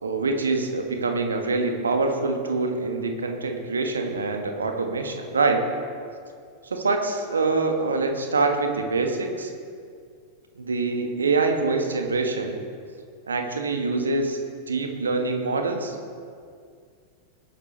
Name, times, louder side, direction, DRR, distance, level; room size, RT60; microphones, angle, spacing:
voice 1, 0.0-5.6 6.6-9.5 10.6-12.6 13.3-14.4 14.7-16.0, right 3 dB, 70° right, 4 dB, 1.5 m, -25 dB
20.0 x 10.5 x 3.3 m, 2.2 s
figure-of-eight pair, 90°, 0 cm